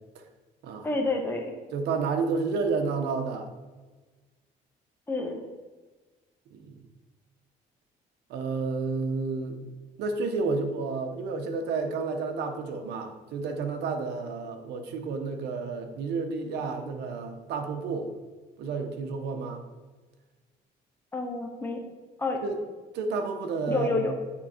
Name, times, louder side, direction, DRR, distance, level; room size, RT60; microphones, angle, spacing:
voice 1, 0.8-1.4 5.1-5.4 21.1-21.8 22.2-22.4 23.7-24.1, left 3 dB, 15° left, 1 dB, 1.0 m, -28 dB
voice 2, 1.7-3.5 6.5-6.8 8.3-9.7 10.0-18.1 18.6-19.6 22.4-22.6 22.9-24.1, right 4 dB, 80° right, 5 dB, 1.0 m, -30 dB
8.8 x 3.8 x 4.5 m, 1.3 s
cardioid pair, 110°, 17 cm